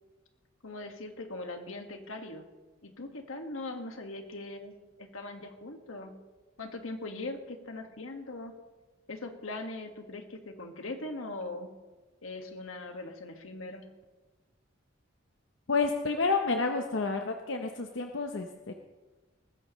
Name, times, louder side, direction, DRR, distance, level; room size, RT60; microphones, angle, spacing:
voice 1, 0.6-2.5 2.8-6.1 6.6-8.5 9.1-11.7 12.2-13.9, left 2 dB, 90° left, 5 dB, 1.7 m, -40 dB
voice 2, 15.7-18.7, left 4 dB, 70° left, 4 dB, 0.8 m, -30 dB
19.5 x 15.5 x 3.1 m, 1.2 s
head